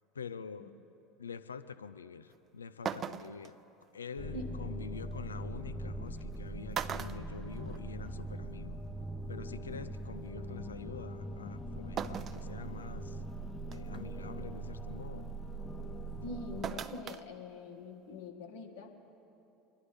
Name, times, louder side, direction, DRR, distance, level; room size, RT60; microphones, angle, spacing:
voice 1, 0.1-0.8 1.2-3.5 3.9-8.8 9.3-13.2 13.7-15.3, left 6 dB, 85° left, 11 dB, 0.4 m, -46 dB
sound 1, 2.3-2.4 2.8-3.5 5.1-5.2 6.2-6.4 6.7-8.1 8.5-8.6 9.8-9.9 12.0-12.5 13.0-13.1 13.7-14.0 16.6-17.2 17.6-17.7, right 8 dB, 40° right, 0.5 m, -38 dB
sound 2, 4.2-16.6, right 1 dB, 15° left, 0.8 m, -41 dB
voice 2, 16.2-18.9, left 3 dB, 70° left, 1 dB, 1.7 m, -44 dB
24.5 x 11.0 x 3.4 m, 2.9 s
figure-of-eight pair, 70°, 0 cm